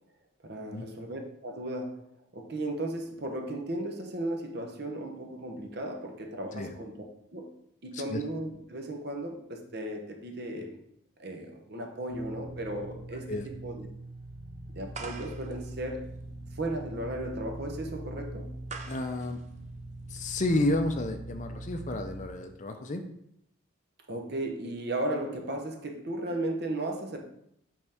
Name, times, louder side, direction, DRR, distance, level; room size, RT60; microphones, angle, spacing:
voice 1, 0.4-6.9 7.3-7.5 7.8-10.8 11.2-13.9 14.7-16.1 16.6-18.5 24.1-27.2, right 1 dB, 50° right, 0.9 m, -35 dB
sound 1, 12.1-22.3, right 1 dB, 80° right, 1.2 m, -42 dB
sound 2, 14.9-20.5, right 4 dB, 35° right, 0.5 m, -47 dB
voice 2, 18.9-19.4 20.1-23.0, left 2 dB, 35° left, 0.5 m, -31 dB
8.1 x 3.6 x 3.5 m
head